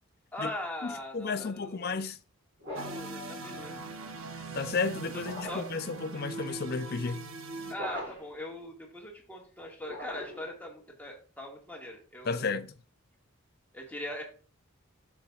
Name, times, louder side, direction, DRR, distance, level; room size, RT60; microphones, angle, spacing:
voice 1, 0.3-1.9 2.8-3.8 5.4-5.6 7.7-12.5 13.7-14.2, left 1 dB, 10° left, 1.9 m, -40 dB
voice 2, 0.8-2.2 4.4-7.3 12.2-12.7, left 4 dB, 45° left, 0.5 m, -33 dB
sound 1, 2.6-3.1 5.2-5.8 7.7-8.4 9.8-10.6, left 1 dB, 50° right, 3.8 m, -41 dB
sound 2, 2.8-7.7, right 3 dB, 65° right, 1.0 m, -41 dB
10.0 x 7.2 x 2.4 m
head